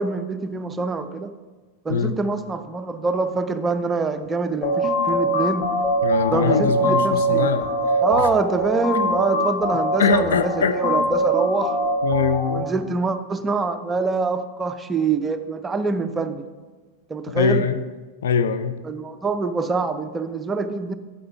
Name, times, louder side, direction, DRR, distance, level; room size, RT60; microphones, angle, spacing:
voice 1, 0.0-1.3 1.8-5.7 6.3-7.5 8.0-11.8 12.5-16.5 17.1-17.7 18.8-21.0, right 4 dB, 15° right, 9 dB, 0.5 m, -25 dB
sound 1, 4.6-12.6, right 1 dB, 40° left, 1.2 m, -23 dB
voice 2, 6.0-8.0 10.0-10.8 12.0-12.7 17.3-17.8 18.2-18.8, left 6 dB, 60° left, 10 dB, 0.4 m, -22 dB
8.8 x 8.6 x 3.5 m, 1.3 s
figure-of-eight pair, 90°, 0 cm